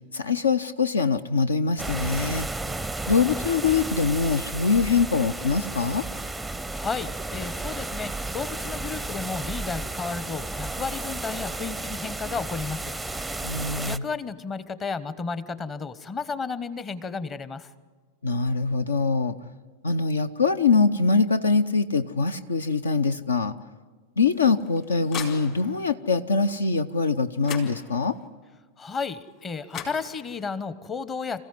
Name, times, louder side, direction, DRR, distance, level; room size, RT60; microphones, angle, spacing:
voice 1, 0.1-2.5 3.1-6.1 13.4-14.0 18.2-19.4 19.8-23.5 24.2-28.2, left 4 dB, 70° left, 14 dB, 0.7 m, -23 dB
sound 1, 1.8-14.0, right 2 dB, 5° right, 0.6 m, -33 dB
voice 2, 6.7-13.0 13.8-17.7 28.8-31.4, left 4 dB, 20° left, 16 dB, 1.0 m, -33 dB
sound 2, 24.3-25.9 27.1-27.2 27.4-28.3 29.4-29.5 29.7-30.6, left 7 dB, 40° left, 4.1 m, -39 dB
26.5 x 15.5 x 9.6 m, 1.4 s
figure-of-eight pair, 90°, 0 cm